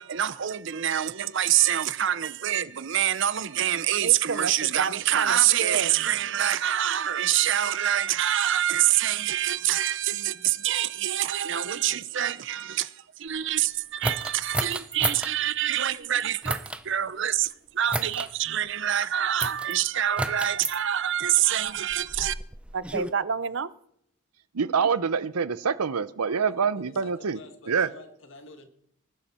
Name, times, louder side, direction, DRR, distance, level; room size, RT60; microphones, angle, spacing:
voice 1, 0.0-22.3 22.7-23.7, right 11 dB, 55° right, 0.6 m, -26 dB
sound 1, 14.0-15.3 16.4-16.8 17.9-18.3 19.4-19.7 20.2-20.8 21.7-23.1, right 2 dB, 5° right, 0.5 m, -31 dB
voice 2, 24.5-27.4 27.7-27.9, right 6 dB, 90° right, 0.7 m, -25 dB
voice 3, 26.2-28.7, left 2 dB, 55° left, 1.8 m, -49 dB
20.0 x 11.5 x 4.4 m
head